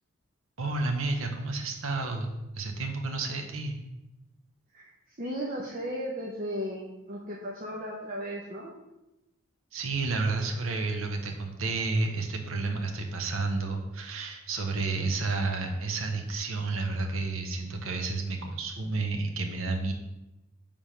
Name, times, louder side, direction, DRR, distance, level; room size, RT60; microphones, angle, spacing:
voice 1, 0.6-3.8 9.7-19.9, right 3 dB, 85° right, 4 dB, 0.8 m, -31 dB
voice 2, 4.7-8.7, equal, 45° right, -3 dB, 0.8 m, -36 dB
5.0 x 3.5 x 5.6 m, 0.96 s
head